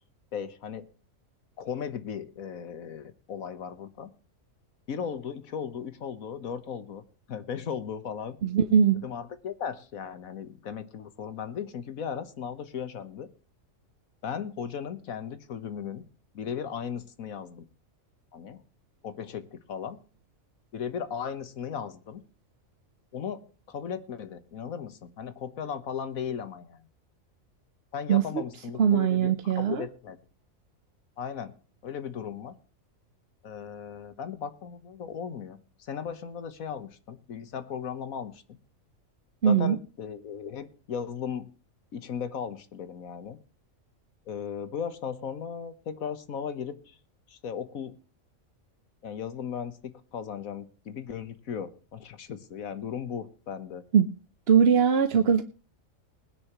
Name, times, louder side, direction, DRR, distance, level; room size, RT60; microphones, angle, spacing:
voice 1, 0.3-0.9 1.6-4.1 4.9-8.4 9.0-13.3 14.2-16.0 16.3-17.7 18.3-18.6 19.0-20.0 20.7-22.2 23.1-26.9 27.9-30.2 31.2-31.5 31.8-32.6 33.4-38.6 39.4-41.5 41.9-43.4 44.3-47.0 47.3-47.9 49.0-53.8, left 7 dB, 85° left, 12 dB, 1.6 m, -36 dB
voice 2, 8.4-9.0 28.1-28.2 28.8-29.8 39.4-39.8 53.9-54.1 54.5-55.4, right 7 dB, 55° right, 9 dB, 1.0 m, -21 dB
20.5 x 10.0 x 3.0 m, 0.36 s
omnidirectional pair, 1.4 m